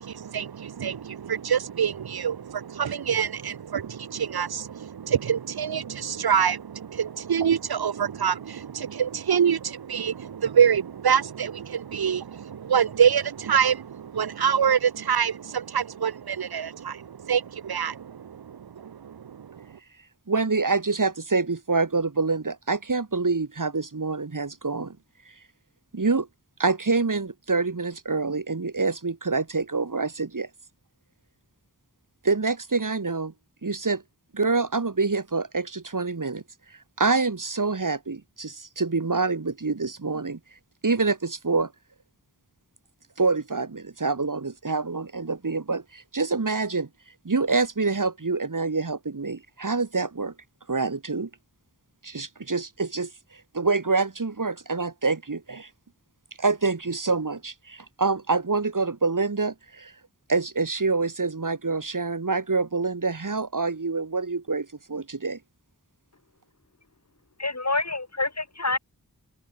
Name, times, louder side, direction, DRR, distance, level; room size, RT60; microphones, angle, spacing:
voice 1, 0.0-19.8, right 8 dB, 85° right, 0.7 m, -26 dB
voice 2, 20.3-25.0 25.9-26.3 26.6-30.5 32.2-33.3 33.6-34.0 34.3-36.4 37.0-40.4 40.8-41.7 43.2-46.9 47.2-50.3 50.7-51.3 52.0-53.1 53.5-55.7 56.4-59.9 60.3-65.4, right 4 dB, 60° right, 2.0 m, -26 dB
voice 3, 67.4-68.8, left 3 dB, 45° left, 2.3 m, -27 dB
open air
wide cardioid pair, 55°, 37 cm